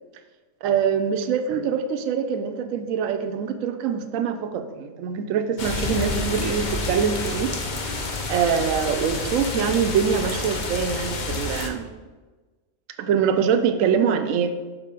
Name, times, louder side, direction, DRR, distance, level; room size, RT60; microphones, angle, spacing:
voice 1, 0.6-7.5 8.3-11.9 13.0-14.5, right 7 dB, 75° right, 7 dB, 1.0 m, -24 dB
sound 1, 5.6-11.7, left 3 dB, 45° left, 0.7 m, -29 dB
6.1 x 4.8 x 5.1 m, 1.3 s
omnidirectional pair, 1.5 m